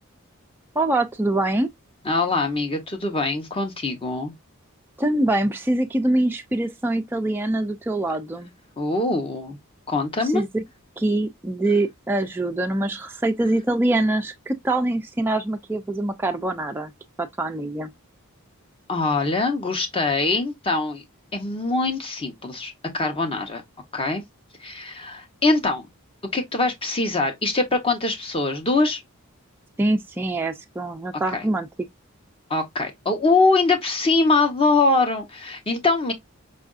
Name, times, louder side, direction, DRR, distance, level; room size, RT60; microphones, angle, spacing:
voice 1, 0.8-1.7 5.0-8.5 10.3-10.6 11.0-16.9 17.2-17.9 29.8-31.7, right 1 dB, 10° right, 0.3 m, -24 dB
voice 2, 2.0-4.3 8.8-9.6 9.9-10.4 18.9-21.0 21.3-23.6 23.9-24.2 24.6-25.9 26.3-29.0 31.3-31.4 32.5-36.1, left 3 dB, 25° left, 0.9 m, -23 dB
5.3 x 2.5 x 2.4 m
head